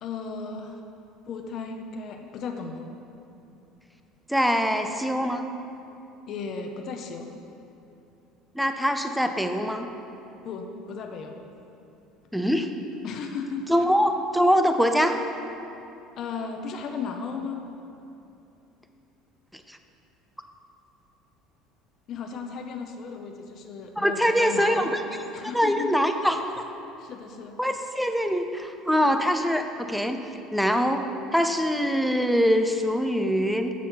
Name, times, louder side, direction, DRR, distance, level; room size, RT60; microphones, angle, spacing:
voice 1, 0.0-0.8 1.3-2.9 6.3-7.3 10.4-11.4 13.0-13.7 16.2-17.6 22.1-25.0 25.3-25.9 27.0-27.6, left 5 dB, 45° left, 3 dB, 0.6 m, -35 dB
voice 2, 4.3-5.4 8.5-9.9 12.3-12.7 13.7-15.2 19.5-19.8 24.0-25.0 25.4-26.6 27.6-30.2 30.5-31.1 31.3-33.7, equal, ahead, 6 dB, 0.5 m, -23 dB
8.3 x 6.1 x 5.7 m, 2.8 s
cardioid pair, 145°, 0 cm